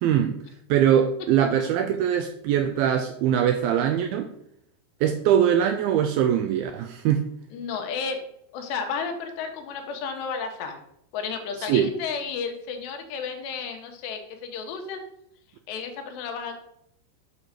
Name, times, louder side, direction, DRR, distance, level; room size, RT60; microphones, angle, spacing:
voice 1, 0.0-0.4 0.7-4.3 5.0-7.3 11.6-11.9, right 9 dB, 85° right, 7 dB, 2.1 m, -22 dB
voice 2, 7.5-8.2 8.5-10.8 11.1-15.0 15.7-16.7, left 5 dB, 85° left, 5 dB, 3.4 m, -32 dB
8.5 x 4.7 x 6.6 m, 0.75 s
omnidirectional pair, 4.8 m